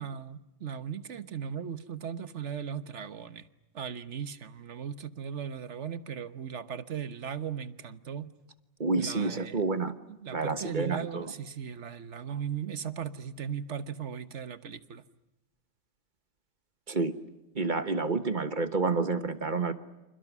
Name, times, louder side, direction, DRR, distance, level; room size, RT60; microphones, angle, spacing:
voice 1, 0.0-3.5 3.7-8.3 9.0-9.6 10.2-15.0, right 8 dB, 75° right, 13 dB, 1.5 m, -37 dB
voice 2, 8.8-9.9 10.3-11.3 16.9-17.1 17.5-19.7, right 3 dB, 40° right, 11 dB, 1.4 m, -29 dB
30.0 x 27.5 x 6.2 m, 1.0 s
omnidirectional pair, 1.2 m